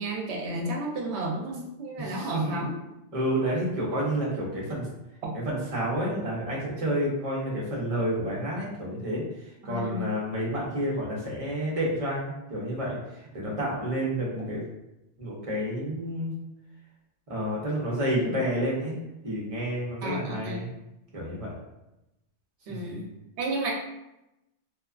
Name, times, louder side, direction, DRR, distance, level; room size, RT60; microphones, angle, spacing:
voice 1, 0.0-2.8 5.2-5.3 9.6-10.1 20.0-20.6 22.7-23.0 23.4-23.7, right 1 dB, 75° right, -1 dB, 0.9 m, -32 dB
voice 2, 2.0-2.6 3.1-4.9 5.3-14.6 15.2-16.3 17.3-19.0 19.2-20.7 21.1-21.6 22.7-22.9, equal, 35° right, -4 dB, 0.7 m, -30 dB
2.7 x 2.2 x 2.4 m, 0.92 s
omnidirectional pair, 1.1 m